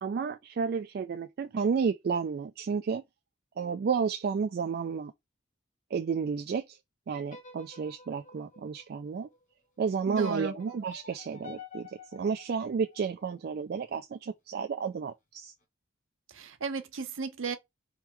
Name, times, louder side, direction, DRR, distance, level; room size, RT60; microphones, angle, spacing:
voice 1, 0.0-3.0 3.6-5.1 5.9-6.8 7.1-9.3 9.8-15.5, right 6 dB, 50° right, 0.3 m, -31 dB
sound 1, 7.2-9.4 10.1-13.3, left 5 dB, 40° left, 1.3 m, -49 dB
voice 2, 10.1-10.5 16.3-17.6, right 4 dB, 85° right, 0.8 m, -34 dB
4.5 x 3.5 x 3.0 m
head